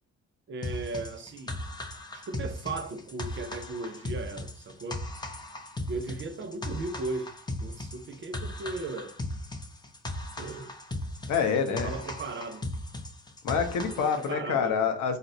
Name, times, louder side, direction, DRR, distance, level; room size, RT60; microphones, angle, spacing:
voice 1, 0.5-1.6 2.1-5.1 5.9-7.3 7.6-9.2 10.4-10.7 11.7-12.7 14.0-14.8, right 3 dB, 40° right, 0.4 m, -37 dB
sound 1, 0.6-14.3, left 1 dB, 15° left, 0.5 m, -37 dB
voice 2, 11.3-12.0 13.4-15.2, left 6 dB, 75° left, 0.6 m, -27 dB
3.8 x 2.1 x 2.6 m
cardioid pair, 90°, 30 cm